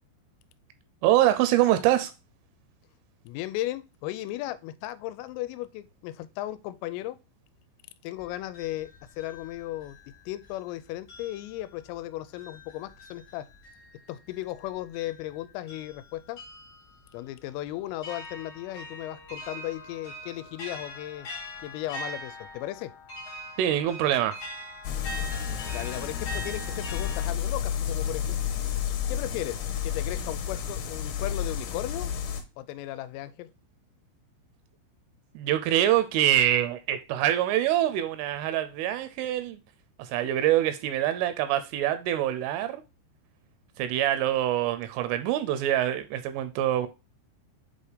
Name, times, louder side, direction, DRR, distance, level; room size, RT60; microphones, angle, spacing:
voice 1, 1.0-2.1 23.6-24.4 35.4-39.6 40.0-42.8 43.8-46.9, right 12 dB, 85° right, 2.9 m, -25 dB
voice 2, 3.3-7.2 8.0-8.9 9.2-10.0 10.3-13.5 14.1-16.4 17.1-21.3 21.6-22.9 25.7-28.4 29.1-32.1 32.6-33.5, left 15 dB, 85° left, 3.1 m, -36 dB
sound 1, 8.2-10.7 11.1-27.3, equal, 40° left, 1.4 m, -43 dB
sound 2, 24.8-32.4, left 9 dB, 70° left, 2.7 m, -31 dB
7.9 x 2.8 x 4.9 m
omnidirectional pair, 5.9 m